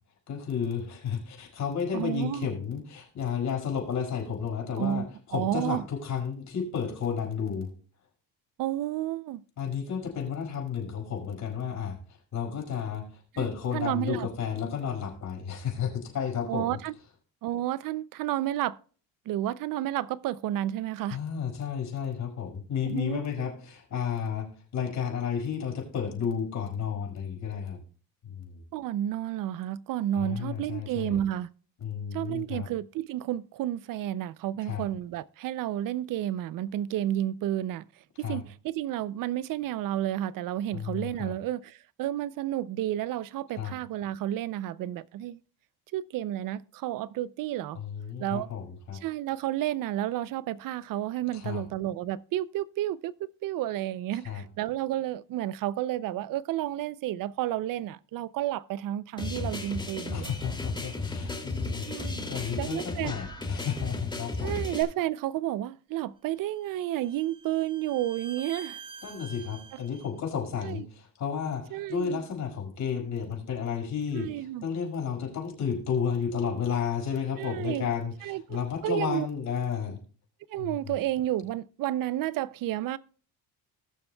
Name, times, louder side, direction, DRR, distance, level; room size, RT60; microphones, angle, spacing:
voice 1, 0.3-7.7 9.6-16.8 21.1-27.8 28.2-28.6 30.1-31.2 31.8-32.7 34.6-34.9 38.2-38.4 40.7-41.3 43.5-43.7 47.7-49.0 51.3-51.6 54.1-54.4 60.1-61.9 62.3-64.6 69.0-80.0 80.6-80.9, left 7 dB, 55° left, 5.2 m, -32 dB
voice 2, 1.9-2.5 4.8-5.1 5.3-5.8 8.6-9.4 13.4-13.5 13.7-14.3 16.5-16.9 17.4-18.8 19.3-21.2 22.9-23.2 28.7-31.5 32.1-37.9 38.2-45.4 45.9-47.8 48.2-48.5 49.0-60.3 61.9-62.2 62.6-63.1 64.4-68.8 70.6-70.8 71.7-72.2 74.1-74.6 77.4-77.9 78.2-78.4 78.8-79.3 80.5-83.0, right 13 dB, 70° right, 0.5 m, -31 dB
sound 1, 59.2-64.8, left 2 dB, 15° left, 2.4 m, -34 dB
Bowed string instrument, 66.3-70.1, right 5 dB, 15° right, 1.4 m, -47 dB
20.0 x 7.0 x 2.2 m
cardioid pair, 130°, 35 cm